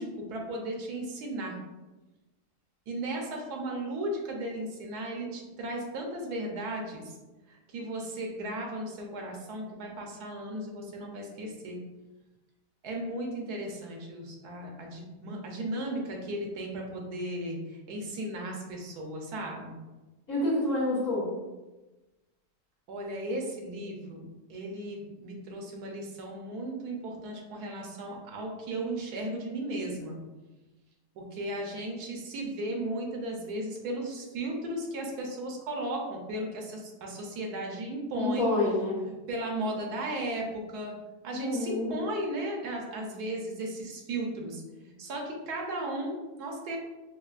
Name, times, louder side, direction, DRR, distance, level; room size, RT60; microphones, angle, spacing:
voice 1, 0.0-1.6 2.9-7.1 7.5-11.8 12.8-19.8 22.9-30.2 31.1-38.5 39.3-40.9 41.2-46.8, right 1 dB, 80° right, 0 dB, 1.2 m, -35 dB
voice 2, 20.3-21.3 38.2-39.0 41.3-41.9, left 1 dB, 55° left, -10 dB, 1.7 m, -28 dB
5.4 x 2.1 x 2.4 m, 1.1 s
omnidirectional pair, 1.7 m